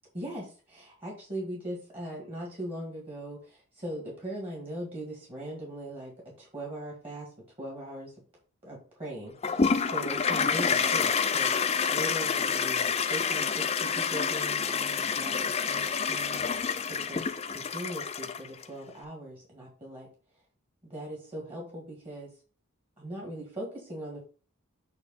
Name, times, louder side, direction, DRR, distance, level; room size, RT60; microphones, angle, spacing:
voice 1, 0.1-7.3 7.6-8.1 8.6-20.1 20.8-22.3 23.0-24.2, right 1 dB, 25° right, -3 dB, 2.2 m, -40 dB
Toilet flush, 9.4-18.6, left 6 dB, 30° left, 0.4 m, -28 dB
8.2 x 3.2 x 5.7 m, 0.39 s
head